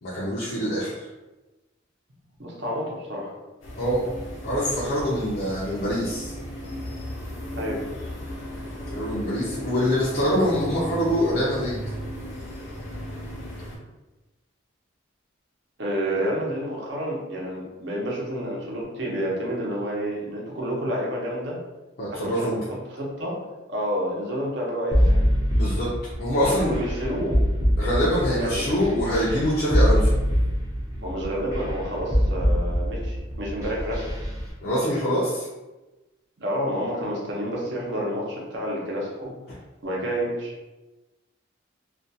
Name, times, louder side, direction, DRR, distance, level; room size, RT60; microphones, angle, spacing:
voice 1, 0.0-1.1 3.8-4.1 4.4-6.4 8.9-11.8 22.0-22.6 25.5-25.9 26.2-26.8 27.8-30.2 34.6-35.5, equal, 50° left, -7 dB, 0.5 m, -24 dB
voice 2, 2.4-3.3 7.5-7.8 15.8-21.6 22.1-22.6 23.0-23.4 23.7-25.2 26.4-27.4 28.3-28.9 31.0-34.0 36.4-39.3 39.8-40.5, equal, 60° right, -4 dB, 0.7 m, -29 dB
sound 1, 3.6-13.8, equal, 85° left, 0.7 m, -36 dB
sound 2, 24.9-34.4, equal, 15° right, 0.6 m, -23 dB
2.4 x 2.3 x 2.6 m, 1.1 s
head